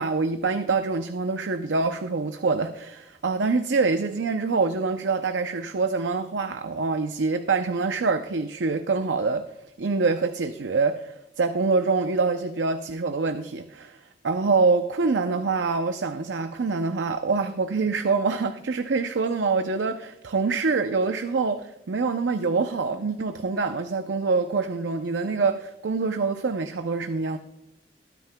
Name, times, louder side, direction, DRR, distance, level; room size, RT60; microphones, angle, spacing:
voice 1, 0.0-9.4 9.8-14.0 14.2-27.4, right 4 dB, 80° right, 8 dB, 0.6 m, -25 dB
22.5 x 9.2 x 2.2 m, 0.90 s
head